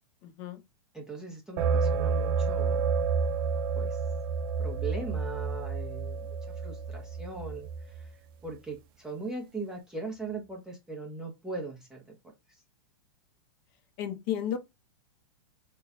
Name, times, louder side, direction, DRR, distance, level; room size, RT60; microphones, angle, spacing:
voice 1, 0.2-0.6 14.0-14.6, left 10 dB, 45° left, 0.8 m, -33 dB
voice 2, 0.9-2.8 3.7-4.0 4.6-12.2 12.5-12.6, right 3 dB, 5° right, 0.9 m, -40 dB
sound 1, 1.6-8.1, right 5 dB, 55° right, 0.4 m, -30 dB
3.1 x 2.3 x 3.8 m
hypercardioid pair, 130°, 14 cm